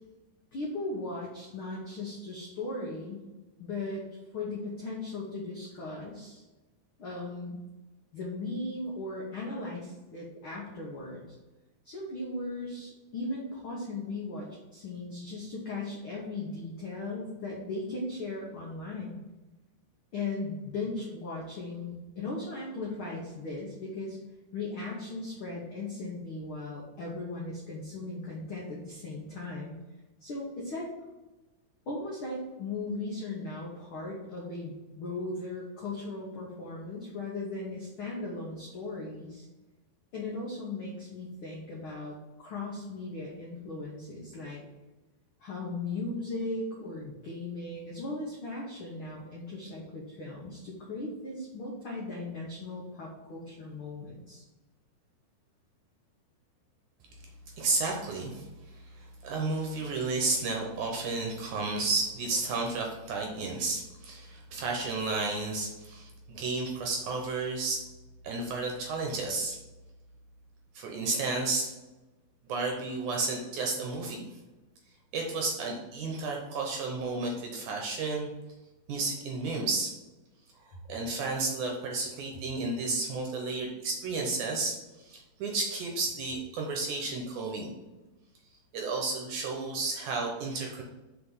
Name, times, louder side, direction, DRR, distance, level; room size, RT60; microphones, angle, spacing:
voice 1, 0.5-3.2 3.6-4.0 4.3-6.4 7.0-7.6 8.1-11.3 11.8-19.2 20.1-24.2 24.5-29.7 30.2-30.9 31.9-39.5 40.1-44.6 45.4-54.4, left 2 dB, 75° left, -4 dB, 1.2 m, -37 dB
voice 2, 57.6-67.8 68.2-69.6 70.8-71.7 72.4-74.2 75.1-78.3 78.9-79.9 80.9-87.7 88.7-90.8, right 3 dB, 70° right, 1 dB, 2.1 m, -32 dB
6.8 x 4.2 x 5.5 m, 1.1 s
omnidirectional pair, 4.4 m